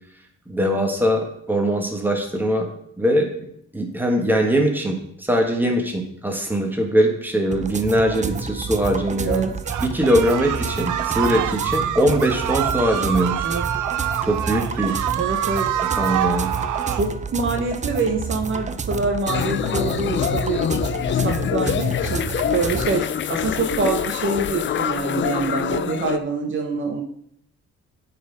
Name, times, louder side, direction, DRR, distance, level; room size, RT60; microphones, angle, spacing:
voice 1, 0.5-2.7 3.0-3.5 3.7-9.4 9.8-13.5 14.2-14.9 16.0-16.5, equal, 5° right, 2 dB, 1.7 m, -21 dB
sound 1, 7.5-22.9, right 5 dB, 25° right, 0.5 m, -30 dB
sound 2, 9.7-17.1, right 10 dB, 75° right, 0.7 m, -26 dB
voice 2, 15.2-15.8 16.9-20.6 21.0-22.3 22.5-27.0, right 4 dB, 40° right, 2 dB, 1.0 m, -25 dB
sound 3, 19.3-26.2, left 9 dB, 40° left, 0.4 m, -25 dB
9.2 x 4.3 x 5.2 m, 0.70 s
cardioid pair, 90°, 30 cm